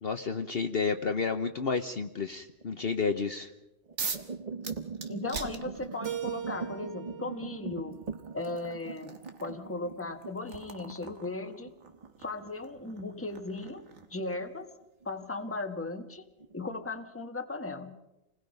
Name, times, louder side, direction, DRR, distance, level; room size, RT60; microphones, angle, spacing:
voice 1, 0.0-3.5, left 5 dB, 50° left, 7 dB, 1.0 m, -31 dB
sound 1, 0.8-1.8 2.4-2.8 3.6-14.7 15.0-15.5 15.8-15.9 16.4-17.1, right 5 dB, 35° right, 0.9 m, -42 dB
sound 2, 4.0-4.3 4.6-6.2 7.3-7.4 7.9-14.6, right 5 dB, 75° right, 1.9 m, -43 dB
voice 2, 5.1-8.0 8.3-11.7 12.2-13.8 14.1-14.7 15.0-16.2 16.5-18.0, left 2 dB, 10° left, 6 dB, 1.2 m, -37 dB
Keyboard (musical), 6.0-8.9, right 9 dB, 60° right, 1.7 m, -42 dB
29.0 x 20.5 x 5.4 m, 0.94 s
omnidirectional pair, 1.4 m